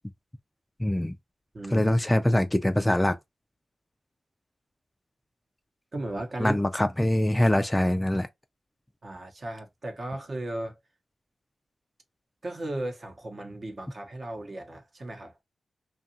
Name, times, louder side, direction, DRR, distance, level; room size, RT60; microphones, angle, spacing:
voice 1, 0.8-1.1 1.7-3.2 6.4-8.3, left 1 dB, 10° left, 0.3 m, -23 dB
voice 2, 1.5-1.9 5.9-6.6 9.0-10.8 12.4-15.3, right 1 dB, 45° right, 0.8 m, -35 dB
2.8 x 2.4 x 2.6 m
cardioid pair, 70°, 0 cm